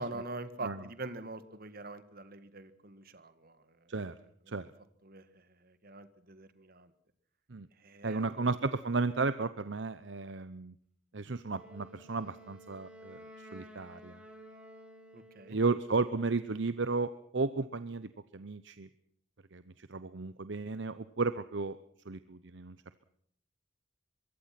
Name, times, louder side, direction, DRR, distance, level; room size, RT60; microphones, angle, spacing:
voice 1, 0.0-3.9 5.0-6.9 7.8-8.5 15.1-15.6, right 2 dB, 50° right, 12 dB, 1.8 m, -44 dB
voice 2, 8.0-10.7 11.1-14.2 15.5-18.9 19.5-21.8 22.0-22.8, right 3 dB, 65° right, 13 dB, 0.8 m, -34 dB
Wind instrument woodwind instrument, 11.5-15.7, equal, 5° right, 5.3 m, -53 dB
24.0 x 22.5 x 6.0 m, 0.63 s
head